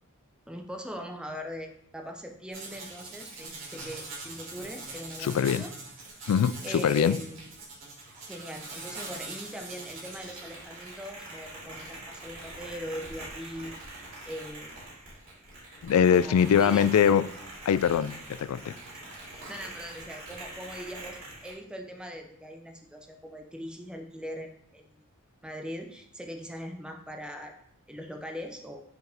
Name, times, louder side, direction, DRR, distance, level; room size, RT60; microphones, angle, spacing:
voice 1, 0.5-5.7 6.6-7.5 8.3-13.7 14.3-14.8 16.1-17.2 19.0-25.0 25.4-27.5 27.9-28.8, equal, 5° right, 3 dB, 0.5 m, -41 dB
sound 1, 2.5-21.5, right 2 dB, 60° right, 2.7 m, -43 dB
voice 2, 5.2-5.6 6.3-7.2 15.8-17.2 17.7-18.7, left 8 dB, 75° left, 15 dB, 0.3 m, -23 dB
6.4 x 4.7 x 3.4 m, 0.70 s
head